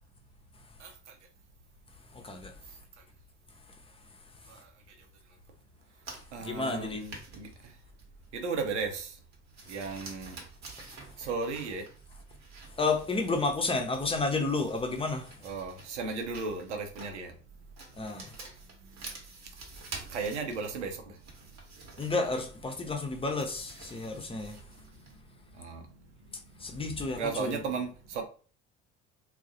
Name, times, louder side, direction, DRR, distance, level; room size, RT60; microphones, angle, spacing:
voice 1, 0.8-1.1 4.5-4.7 6.3-7.5 8.3-9.2 9.7-10.4 11.2-11.9 15.4-17.3 20.1-21.2 25.5-25.9 27.2-28.2, right 4 dB, 85° right, 0.6 m, -35 dB
voice 2, 2.1-2.5 6.4-7.0 12.8-15.3 18.0-18.3 22.0-24.6 26.6-27.6, left 3 dB, 15° left, 0.5 m, -31 dB
sound 1, 6.0-25.2, right 3 dB, 50° right, 1.0 m, -49 dB
2.2 x 2.0 x 2.7 m
hypercardioid pair, 60°, 34 cm